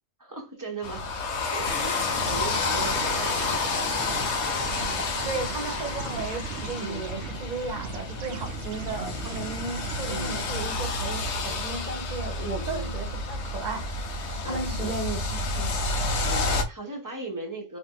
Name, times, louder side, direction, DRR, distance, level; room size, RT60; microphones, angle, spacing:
voice 1, 0.2-1.1 1.5-4.1 6.8-7.1 10.0-10.4 12.4-12.9 14.4-15.0 16.2-17.8, right 2 dB, 20° right, 1.1 m, -38 dB
sound 1, 0.8-16.6, left 3 dB, 90° left, 1.1 m, -30 dB
sound 2, 1.5-11.0, right 5 dB, 80° right, 0.9 m, -38 dB
voice 2, 5.2-13.8 14.5-15.8, right 3 dB, 40° right, 1.1 m, -35 dB
3.1 x 2.9 x 3.7 m
omnidirectional pair, 1.1 m